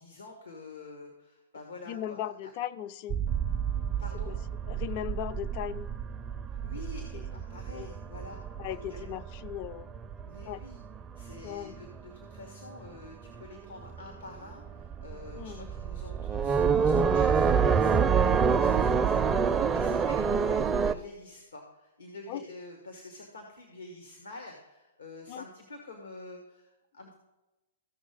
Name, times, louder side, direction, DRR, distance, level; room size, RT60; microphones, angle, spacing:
voice 1, 0.0-2.5 4.0-4.4 6.5-9.0 10.2-10.8 11.1-18.1 18.5-27.1, left 2 dB, 90° left, 2 dB, 1.6 m, -47 dB
voice 2, 1.9-3.2 4.3-4.4 4.7-5.9 7.1-7.4 7.7-7.9 8.6-9.9 10.5-10.6 11.4-11.8 15.3-15.7 17.9-18.1 19.8-19.9 22.3-22.4 25.3-25.4, left 11 dB, 45° left, 15 dB, 0.4 m, -38 dB
sound 1, 3.1-12.0 12.3-13.1 13.4-13.5 13.8-20.9, right 6 dB, 15° right, 0.4 m, -28 dB
15.0 x 5.9 x 4.0 m, 1.0 s
hypercardioid pair, 120°, 0 cm